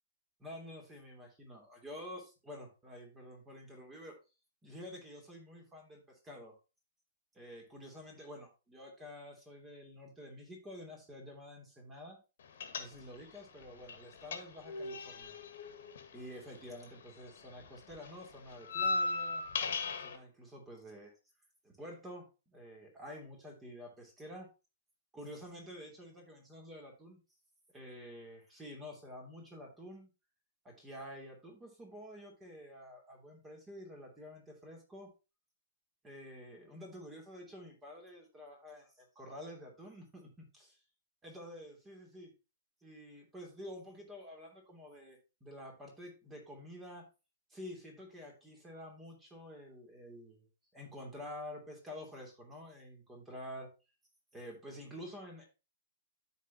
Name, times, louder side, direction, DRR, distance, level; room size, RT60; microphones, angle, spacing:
voice 1, 0.4-4.1 4.6-6.6 7.3-12.2 12.8-15.4 16.1-19.4 20.0-21.1 21.6-24.5 25.1-27.2 27.7-30.1 30.6-35.1 36.0-40.8 41.2-42.3 42.8-47.0 47.5-50.5 50.7-53.7 54.3-55.4, equal, 15° right, 2 dB, 2.8 m, -49 dB
sound 1, 12.6-13.4 13.6-17.0 17.3-20.2, left 3 dB, 60° left, 1.5 m, -37 dB
13.0 x 4.4 x 2.9 m, 0.29 s
figure-of-eight pair, 110°, 0 cm